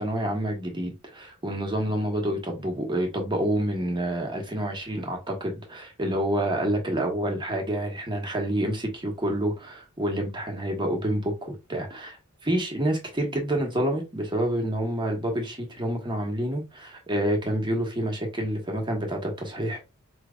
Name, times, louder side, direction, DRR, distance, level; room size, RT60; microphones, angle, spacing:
voice 1, 0.0-19.9, right 1 dB, 25° right, 1.1 m, -28 dB
4.9 x 3.0 x 2.3 m
head